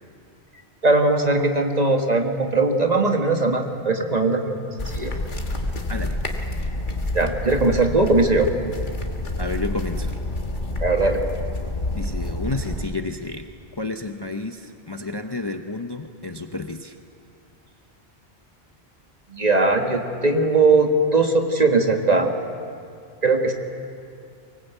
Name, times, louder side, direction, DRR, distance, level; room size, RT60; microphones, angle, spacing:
voice 1, 0.8-5.1 7.1-8.5 10.8-11.2 19.3-22.3 23.2-23.5, right 3 dB, 40° right, 4 dB, 1.7 m, -20 dB
sound 1, 4.8-12.9, left 1 dB, 45° left, 1.8 m, -28 dB
voice 2, 9.4-10.1 11.9-13.5 13.8-17.0, left 3 dB, 25° left, 5 dB, 0.8 m, -31 dB
24.0 x 19.5 x 8.1 m, 2.4 s
omnidirectional pair, 1.1 m